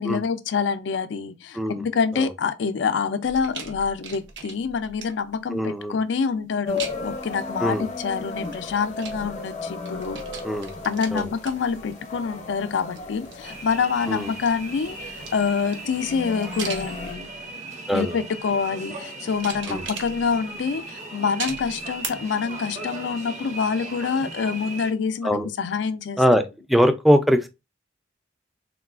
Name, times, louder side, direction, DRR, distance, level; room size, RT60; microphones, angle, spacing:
voice 1, 0.0-10.2 10.8-17.3 17.9-26.2, left 5 dB, 75° left, 0.4 m, -26 dB
sound 1, 3.2-5.4 6.8-7.3 8.3-9.6 9.8-12.3 12.7-13.8 14.2-17.4 18.1-18.5 19.2-20.6 21.4-22.1 22.5-22.6, right 5 dB, 80° right, 0.7 m, -39 dB
voice 2, 5.5-6.0 7.6-7.8 10.4-10.7 11.1-11.2 14.1-14.3 17.9-18.2 19.7-19.8 25.2-25.5 26.2-26.4 26.7-27.5, equal, ahead, 0.3 m, -21 dB
sound 2, 6.7-17.1, left 4 dB, 40° left, 0.7 m, -35 dB
sound 3, 13.4-24.9, right 2 dB, 40° right, 0.6 m, -38 dB
3.7 x 2.3 x 2.3 m
head